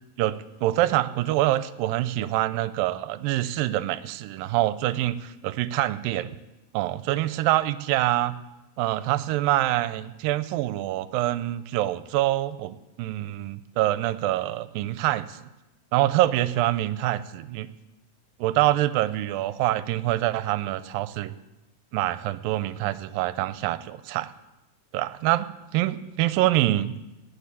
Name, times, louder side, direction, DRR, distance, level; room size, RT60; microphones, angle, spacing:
voice 1, 0.6-6.3 6.7-8.4 8.8-15.4 15.9-17.7 18.4-21.3 21.9-24.3 24.9-27.0, right 15 dB, 80° right, 14 dB, 2.2 m, -25 dB
18.0 x 6.9 x 8.3 m, 1.0 s
omnidirectional pair, 4.2 m